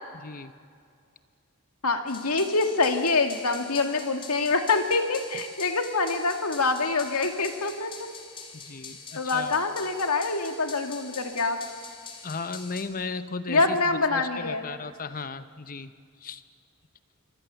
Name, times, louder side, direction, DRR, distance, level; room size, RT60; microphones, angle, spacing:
voice 1, 1.8-8.1 9.2-11.6 13.5-14.7, left 3 dB, 80° left, 5 dB, 2.2 m, -25 dB
sound 1, 2.1-12.8, left 5 dB, 25° left, 2.8 m, -44 dB
voice 2, 8.5-9.5 12.2-15.9 16.2-16.4, left 4 dB, 40° left, 12 dB, 0.8 m, -36 dB
26.5 x 23.0 x 7.0 m, 2.1 s
head